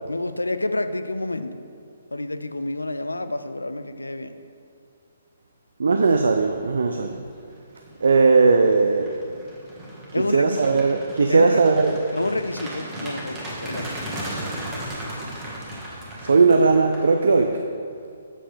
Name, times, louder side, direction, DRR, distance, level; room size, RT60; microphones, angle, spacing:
voice 1, 0.1-1.6 2.1-4.3 10.1-10.6 11.3-11.6 12.1-13.9, left 2 dB, 80° left, 10 dB, 0.4 m, -28 dB
voice 2, 5.8-7.3 8.0-9.1 10.1-12.0 16.2-17.6, right 4 dB, 60° right, 5 dB, 0.4 m, -18 dB
sound 1, 6.8-7.1 7.5-17.6, right 1 dB, 15° right, 1.4 m, -36 dB
7.4 x 6.5 x 3.3 m, 2.4 s
figure-of-eight pair, 130°, 0 cm